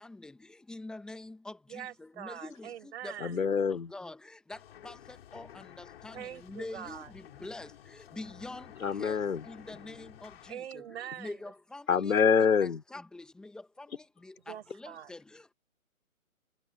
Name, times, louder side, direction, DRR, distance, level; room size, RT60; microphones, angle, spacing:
voice 1, 0.7-1.5 2.2-2.7 3.0-3.4 3.9-4.2 4.5-4.6 4.8-4.9 5.3-5.5 5.8-6.1 6.5-7.0 7.4-7.7 8.2-8.6 9.0-9.2 9.5-10.3 11.2-11.8 12.9-13.5 14.8-15.2, left 2 dB, ahead, 1.0 m, -43 dB
voice 2, 1.7-3.3 6.1-7.1 10.5-11.4 14.5-15.1, right 10 dB, 50° right, 4.5 m, -43 dB
voice 3, 3.2-3.9 8.8-9.5 11.9-12.8, left 6 dB, 70° left, 3.2 m, -26 dB
sound 1, 4.5-10.5, left 11 dB, 45° left, 3.9 m, -52 dB
hypercardioid pair, 150°, 42 cm